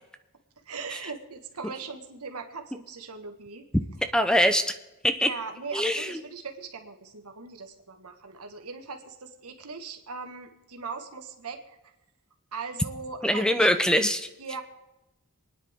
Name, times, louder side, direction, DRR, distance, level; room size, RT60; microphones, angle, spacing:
voice 1, 0.6-3.7 5.2-11.8 12.5-13.7 14.4-14.6, right 4 dB, 80° right, 5 dB, 1.7 m, -39 dB
voice 2, 4.1-4.6 5.0-5.3 5.7-6.2 13.2-14.3, equal, 5° left, 9 dB, 0.5 m, -23 dB
27.5 x 10.0 x 3.7 m, 1.0 s
head